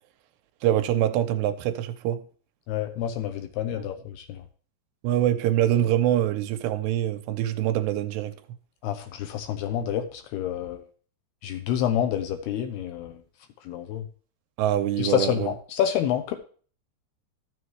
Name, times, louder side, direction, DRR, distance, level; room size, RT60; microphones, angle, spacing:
voice 1, 0.6-2.2 3.7-3.9 5.0-8.3 14.6-15.5, right 12 dB, 80° right, 2.7 m, -24 dB
voice 2, 2.7-4.4 8.8-10.8 11.4-13.1 13.7-14.0 15.0-16.4, left 10 dB, 75° left, 2.6 m, -28 dB
13.0 x 7.0 x 3.2 m
omnidirectional pair, 5.1 m